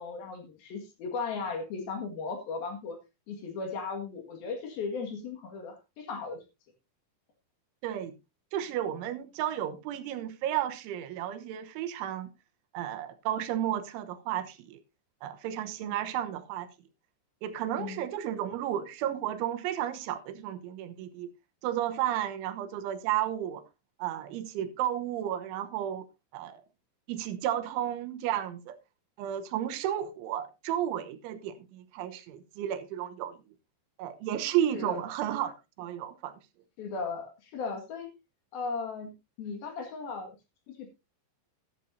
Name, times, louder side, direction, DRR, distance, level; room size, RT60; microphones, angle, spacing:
voice 1, 0.0-3.0 3.3-6.4 15.8-15.9 17.8-18.0 34.7-35.0 36.8-38.1 38.5-40.4 40.7-40.9, left 4 dB, 60° left, 3.4 m, -36 dB
voice 2, 7.8-8.2 8.5-12.3 12.7-14.8 15.2-16.7 17.4-21.3 21.6-23.6 24.0-26.1 26.3-26.6 27.1-28.8 29.2-33.4 34.0-36.4, right 11 dB, 90° right, 3.4 m, -33 dB
13.0 x 12.5 x 2.7 m
omnidirectional pair, 5.4 m